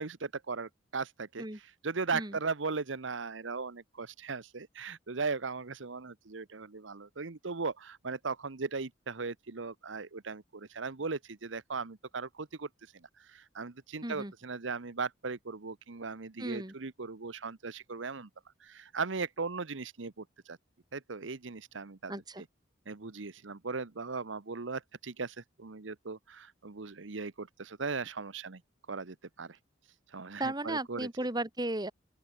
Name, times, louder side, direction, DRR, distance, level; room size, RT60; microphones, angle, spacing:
voice 1, 0.0-12.7 13.2-18.3 18.6-20.6 20.9-22.1 22.4-22.5 22.9-28.6 28.9-29.6 30.1-31.1, right 4 dB, 80° right, 1.0 m, -38 dB
voice 2, 14.0-14.3 16.4-16.7 22.1-22.4 30.4-31.9, right 1 dB, 20° right, 2.8 m, -35 dB
open air
head